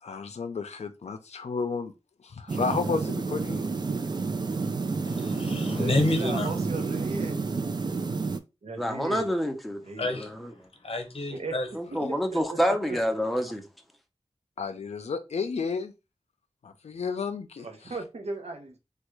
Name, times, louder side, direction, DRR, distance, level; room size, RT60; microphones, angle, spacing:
voice 1, 0.0-1.9 2.2-3.7 12.0-12.1 14.6-15.9 16.6-18.0, left 5 dB, 75° left, 0.4 m, -32 dB
sound 1, 2.5-8.4, right 4 dB, 40° right, 0.3 m, -30 dB
voice 2, 5.1-6.5 10.0-10.3 10.8-11.7, left 2 dB, 60° left, 0.9 m, -29 dB
voice 3, 5.8-7.4 8.6-9.3 9.8-10.1 11.3-11.6 11.9-12.0 12.3-13.0 17.6-18.8, right 3 dB, 70° right, 0.7 m, -36 dB
voice 4, 8.8-9.8 10.1-10.5 11.8-13.6, equal, ahead, 0.6 m, -27 dB
3.3 x 2.3 x 3.1 m
wide cardioid pair, 60°, 11 cm